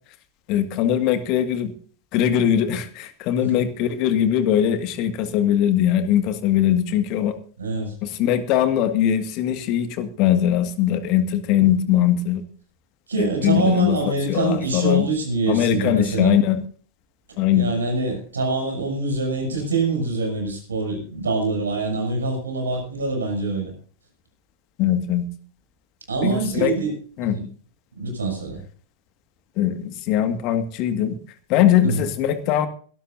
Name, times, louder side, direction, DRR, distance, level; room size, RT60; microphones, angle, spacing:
voice 1, 0.5-1.7 2.1-7.3 8.0-12.4 13.2-14.0 14.3-15.1 15.5-16.6 17.4-17.7 24.8-25.3 26.2-26.7 27.2-27.4 29.6-31.2 31.5-32.7, left 10 dB, 40° left, 10 dB, 1.9 m, -21 dB
voice 2, 7.6-7.9 13.1-16.4 17.5-23.7 26.1-27.4 28.0-28.6 31.8-32.0, right 3 dB, 70° right, 2 dB, 7.0 m, -25 dB
23.0 x 13.0 x 2.7 m, 0.43 s
figure-of-eight pair, 90°, 0 cm